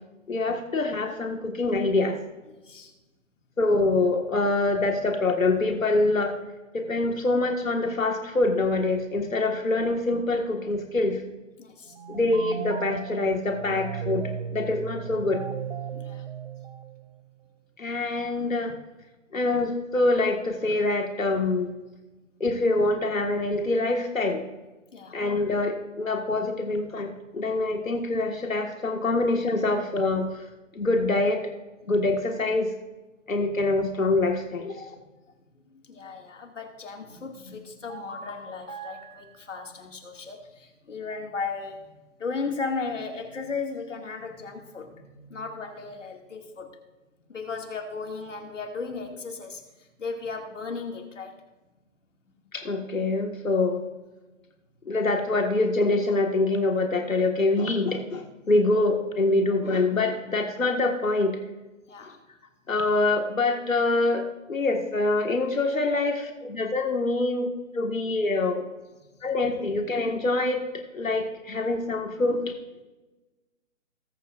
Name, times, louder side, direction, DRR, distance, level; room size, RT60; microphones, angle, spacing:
voice 1, 0.3-2.2 3.6-6.4 6.7-11.2 12.1-15.4 17.8-18.7 19.3-21.7 22.4-24.4 25.1-30.3 30.7-31.4 31.9-32.7 33.3-34.9 52.5-53.8 54.9-61.4 62.7-67.5 67.7-68.6 69.2-70.6 70.9-72.5, left 2 dB, 85° left, 3 dB, 1.7 m, -25 dB
voice 2, 2.5-2.9 11.6-12.0 15.9-16.2 24.9-25.1 34.9-35.1 35.7-46.8 47.3-51.4 61.9-62.2 69.1-69.3, left 4 dB, 70° left, 3 dB, 2.2 m, -36 dB
sound 1, 11.9-17.4, right 7 dB, 55° right, 0.7 m, -36 dB
20.0 x 7.1 x 2.5 m, 1.1 s
figure-of-eight pair, 150°, 39 cm